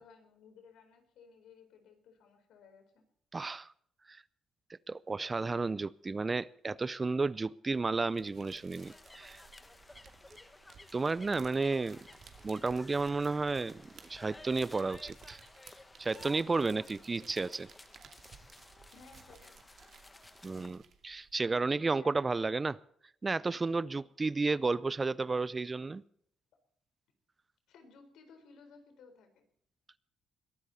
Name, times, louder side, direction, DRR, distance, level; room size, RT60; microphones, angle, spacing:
voice 1, 0.0-3.0 18.9-19.6 21.7-22.3 27.7-29.4, left 5 dB, 80° left, 4.2 m, -57 dB
voice 2, 3.3-3.7 4.1-4.2 4.9-9.4 10.9-12.0 12.4-13.8 14.1-15.4 16.0-17.7 20.4-22.8 23.2-26.0, right 3 dB, 25° right, 0.5 m, -32 dB
sound 1, 7.7-21.3, right 6 dB, 60° right, 2.4 m, -58 dB
sound 2, 8.8-20.7, left 2 dB, 15° left, 1.3 m, -55 dB
21.5 x 13.5 x 4.2 m
cardioid pair, 90°, 0 cm